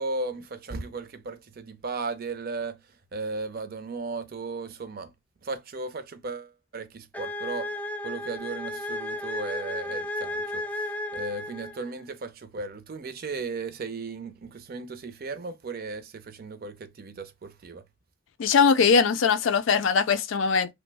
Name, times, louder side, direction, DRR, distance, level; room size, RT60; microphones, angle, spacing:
voice 1, 0.0-5.1 5.4-7.7 8.0-17.8, right 3 dB, 50° right, 0.5 m, -36 dB
sound 1, 7.1-12.0, left 1 dB, 10° left, 0.3 m, -33 dB
voice 2, 18.4-20.7, left 5 dB, 80° left, 0.4 m, -21 dB
3.0 x 2.1 x 3.2 m
head